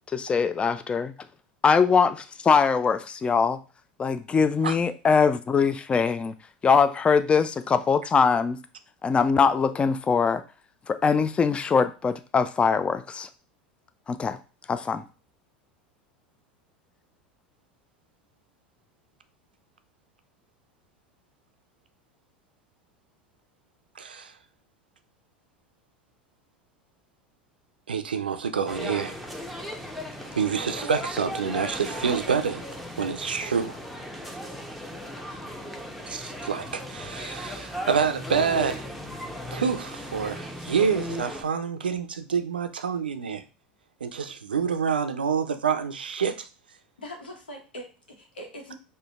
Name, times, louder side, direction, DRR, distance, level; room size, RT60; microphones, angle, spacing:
voice 1, 0.1-1.1 1.6-3.6 4.0-6.3 6.6-8.6 9.0-10.4 10.9-13.3 14.1-14.4 14.7-15.0, left 5 dB, 20° left, 0.3 m, -22 dB
voice 2, 24.0-24.3 27.9-29.2 30.3-32.6 33.0-33.8 36.1-38.9 39.5-43.4 44.0-46.5, right 6 dB, 85° right, 0.4 m, -27 dB
sound 1, 28.7-41.4, equal, ahead, 0.7 m, -37 dB
voice 3, 35.2-35.7 47.0-48.7, equal, 90° left, 0.9 m, -43 dB
5.0 x 2.2 x 2.3 m
hypercardioid pair, 80°, 5 cm